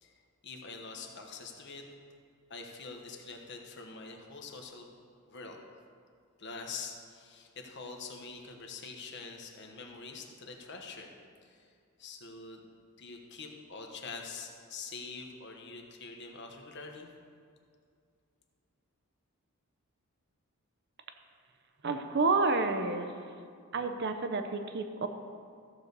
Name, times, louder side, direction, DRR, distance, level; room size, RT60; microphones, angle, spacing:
voice 1, 0.0-1.8 2.5-4.9 5.3-5.6 6.4-11.1 11.4-11.7 12.0-12.7 13.0-17.1, left 4 dB, 50° left, 2 dB, 1.1 m, -45 dB
voice 2, 21.8-23.1 23.7-25.1, right 3 dB, 50° right, 7 dB, 0.6 m, -29 dB
14.0 x 6.8 x 4.0 m, 2.2 s
head